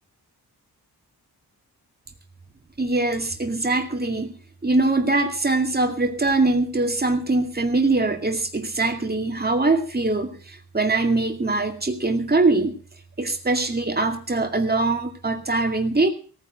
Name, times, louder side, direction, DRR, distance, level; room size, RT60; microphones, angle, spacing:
voice 1, 2.8-4.3 4.6-12.7 13.2-16.1, right 2 dB, 25° right, 5 dB, 2.3 m, -22 dB
18.0 x 9.5 x 6.5 m, 0.40 s
wide cardioid pair, 135°, 39 cm